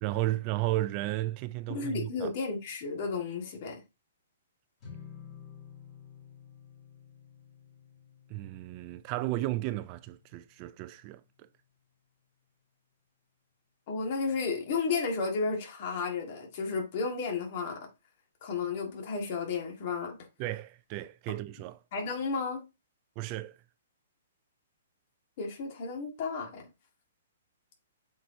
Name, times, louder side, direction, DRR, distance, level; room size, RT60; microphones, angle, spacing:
voice 1, 0.0-2.3 8.3-11.2 20.4-21.8 23.2-23.6, right 16 dB, 30° right, 0.4 m, -33 dB
voice 2, 1.7-3.8 13.9-17.9 18.4-20.2 21.9-22.6 25.4-26.7, left 4 dB, 40° left, 1.9 m, -33 dB
sound 1, 4.8-11.2, left 7 dB, 25° left, 3.7 m, -52 dB
7.7 x 4.6 x 2.7 m
hypercardioid pair, 155°, 0 cm